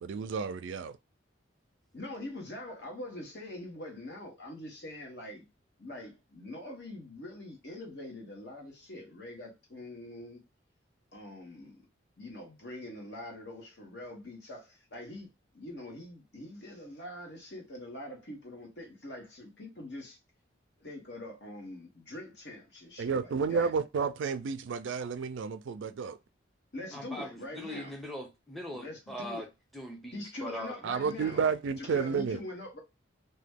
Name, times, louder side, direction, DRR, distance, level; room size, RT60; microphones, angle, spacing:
voice 1, 0.0-0.9 23.0-26.2 30.8-32.4, right 5 dB, 80° right, 0.4 m, -31 dB
voice 2, 1.9-5.4 5.8-10.4 11.1-11.8 12.2-15.3 15.5-20.2 20.8-23.7 26.7-27.9 28.7-29.5 30.1-31.5 31.8-32.8, left 1 dB, 60° left, 1.2 m, -43 dB
voice 3, 26.9-29.5 29.7-30.8, equal, ahead, 0.6 m, -41 dB
2.9 x 2.2 x 3.5 m
head